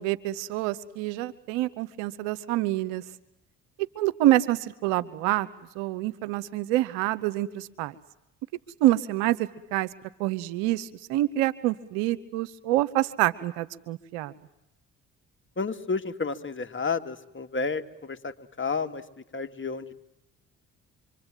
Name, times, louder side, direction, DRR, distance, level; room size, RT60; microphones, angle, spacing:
voice 1, 0.0-3.0 3.9-5.5 5.7-7.9 8.8-9.9 10.2-14.3, right 15 dB, 85° right, 16 dB, 1.1 m, -26 dB
voice 2, 15.6-19.0 19.3-19.9, left 4 dB, 30° left, 6 dB, 2.3 m, -31 dB
26.0 x 25.0 x 9.2 m, 0.84 s
hypercardioid pair, 50°, 39 cm